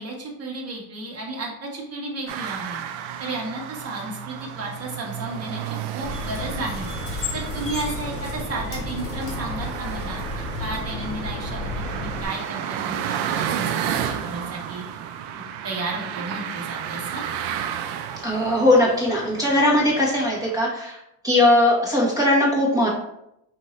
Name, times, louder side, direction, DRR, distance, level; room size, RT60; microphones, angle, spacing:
voice 1, 0.0-2.8 3.2-13.7 14.0-14.8 15.4-17.2, right 2 dB, 35° right, -1 dB, 1.3 m, -33 dB
sound 1, 2.3-20.6, right 9 dB, 65° right, 0.5 m, -32 dB
sound 2, 6.0-12.2, left 2 dB, 30° left, 1.4 m, -32 dB
voice 2, 18.2-21.0 21.2-22.9, left 1 dB, 10° right, -4 dB, 1.2 m, -19 dB
5.4 x 2.8 x 3.1 m, 0.80 s
cardioid pair, 120°, 45 cm